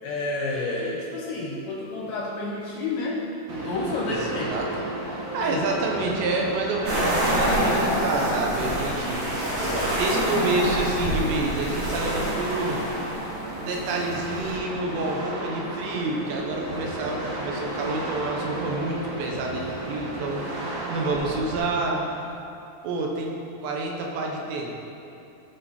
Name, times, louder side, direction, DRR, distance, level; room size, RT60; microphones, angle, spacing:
voice 1, 0.0-3.3 3.6-4.6, left 2 dB, 75° left, -2 dB, 2.3 m, -29 dB
sound 1, 3.5-21.6, right 1 dB, 60° right, 1.6 m, -34 dB
voice 2, 4.1-9.2 10.0-12.8 13.6-20.4 20.9-22.0 22.8-24.7, right 2 dB, 75° right, 0 dB, 3.1 m, -28 dB
sound 2, 6.8-14.5, equal, 40° right, 3.3 m, -27 dB
16.5 x 5.6 x 4.2 m, 2.7 s
omnidirectional pair, 5.3 m